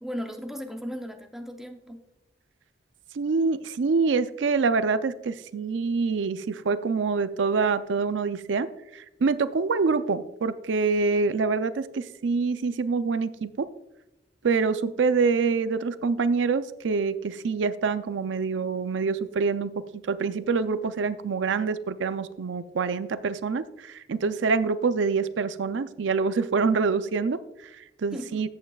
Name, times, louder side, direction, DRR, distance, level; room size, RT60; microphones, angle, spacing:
voice 1, 0.0-2.0 28.1-28.5, equal, ahead, 4 dB, 0.6 m, -36 dB
voice 2, 3.1-8.7 8.9-13.7 14.4-28.5, right 4 dB, 85° right, 13 dB, 0.4 m, -26 dB
14.0 x 8.6 x 2.3 m, 0.91 s
head